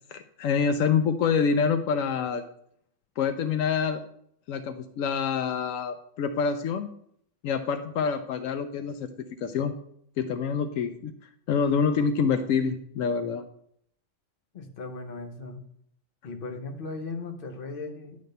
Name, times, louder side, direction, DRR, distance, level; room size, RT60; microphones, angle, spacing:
voice 1, 0.1-2.4 3.2-4.0 4.5-6.9 7.4-9.1 9.4-9.7 10.2-13.5, left 6 dB, 80° left, 9 dB, 1.0 m, -26 dB
voice 2, 14.5-15.6 16.2-18.2, left 3 dB, 45° left, 5 dB, 1.1 m, -37 dB
10.5 x 3.6 x 6.6 m, 0.69 s
omnidirectional pair, 1.4 m